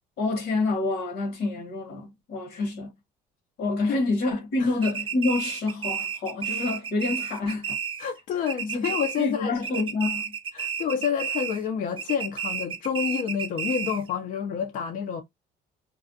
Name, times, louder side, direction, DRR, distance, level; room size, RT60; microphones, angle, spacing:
voice 1, 0.2-2.9 3.6-7.8 8.6-8.8 9.2-10.3, left 3 dB, 80° left, 1.1 m, -27 dB
sound 1, 4.8-8.2 8.5-9.4 9.6-11.7 12.0-14.1, right 7 dB, 30° right, 0.4 m, -32 dB
voice 2, 8.0-9.8 10.5-15.2, left 7 dB, 55° left, 0.4 m, -29 dB
2.4 x 2.1 x 2.5 m
cardioid pair, 110°, 17 cm